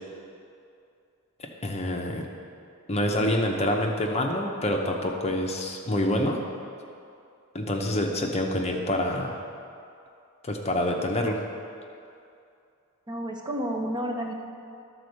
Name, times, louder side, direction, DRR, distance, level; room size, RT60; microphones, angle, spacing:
voice 1, 1.4-2.3 2.9-6.4 7.5-9.4 10.4-11.4, left 1 dB, 30° left, 2 dB, 0.8 m, -27 dB
voice 2, 13.1-14.3, equal, 20° right, 1 dB, 0.7 m, -30 dB
11.5 x 4.4 x 6.5 m, 2.5 s
head